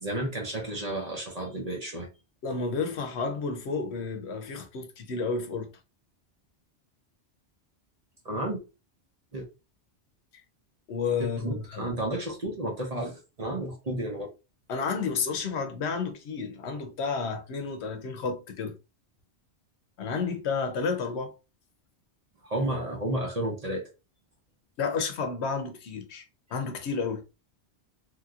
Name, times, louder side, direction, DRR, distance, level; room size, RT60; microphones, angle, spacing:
voice 1, 0.0-2.1 8.2-8.6 9.3-9.4 11.2-13.1 13.4-14.3 22.4-23.8, right 1 dB, 40° right, 0.8 m, -32 dB
voice 2, 2.4-5.7 10.9-12.0 14.7-18.7 20.0-21.3 24.8-26.2 26.5-27.2, left 5 dB, 75° left, 0.9 m, -31 dB
3.1 x 2.7 x 2.4 m
omnidirectional pair, 1.2 m